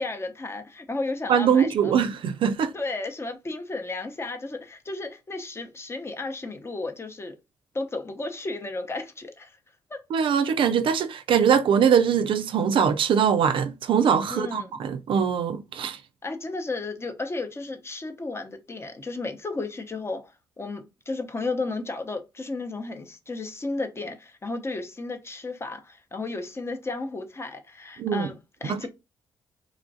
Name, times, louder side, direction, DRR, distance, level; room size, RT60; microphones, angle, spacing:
voice 1, 0.0-1.9 2.7-7.4 7.7-9.6 9.9-10.0 14.3-14.8 16.2-28.9, left 3 dB, 25° left, 0.7 m, -33 dB
voice 2, 1.3-2.7 10.1-16.0 28.0-28.3 28.7-28.9, right 7 dB, 60° right, 0.3 m, -22 dB
3.1 x 2.4 x 2.6 m
supercardioid pair, 65°, 10 cm